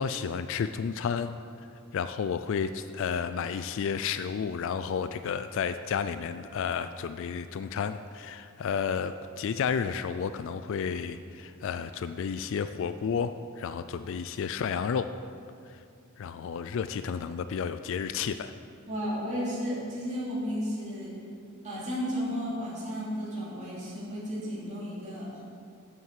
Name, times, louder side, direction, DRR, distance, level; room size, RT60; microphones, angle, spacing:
voice 1, 0.0-1.4 1.9-15.1 15.7-15.8 16.2-18.5, left 6 dB, 60° left, 11 dB, 0.3 m, -31 dB
voice 2, 18.9-21.1 21.6-25.4, equal, 30° right, -8 dB, 2.9 m, -33 dB
8.4 x 7.8 x 7.5 m, 2.4 s
head